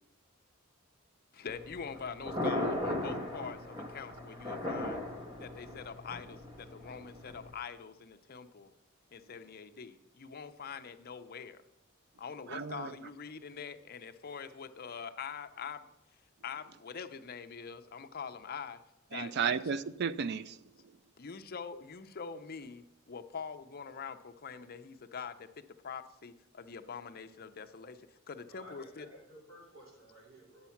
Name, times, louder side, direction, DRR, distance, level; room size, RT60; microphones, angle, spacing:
voice 1, 1.3-5.0 5.4-8.7 9.1-11.6 12.2-15.8 16.4-18.8 19.1-19.6 21.2-25.3 25.8-28.0 28.3-29.1, left 6 dB, 50° left, 0.6 m, -44 dB
Thunder, 1.5-7.5, left 1 dB, 25° right, 1.7 m, -37 dB
voice 2, 12.5-13.0 19.1-20.7, right 6 dB, 55° right, 0.4 m, -34 dB
voice 3, 28.5-30.7, right 1 dB, 75° right, 4.4 m, -54 dB
9.5 x 7.1 x 5.8 m
head